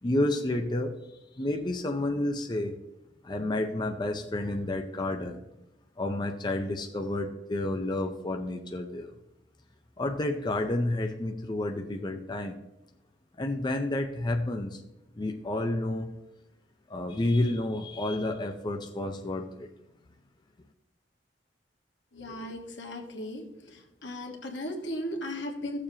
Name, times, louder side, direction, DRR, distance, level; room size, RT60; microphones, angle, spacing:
voice 1, 0.0-1.0 1.3-2.8 3.2-5.4 6.0-9.1 10.0-12.6 13.4-14.8 15.2-16.2 16.9-19.7, left 1 dB, 25° left, 4 dB, 0.5 m, -30 dB
voice 2, 22.1-23.4 24.0-25.8, left 1 dB, 80° left, 3 dB, 1.4 m, -36 dB
15.0 x 6.8 x 2.8 m, 0.94 s
head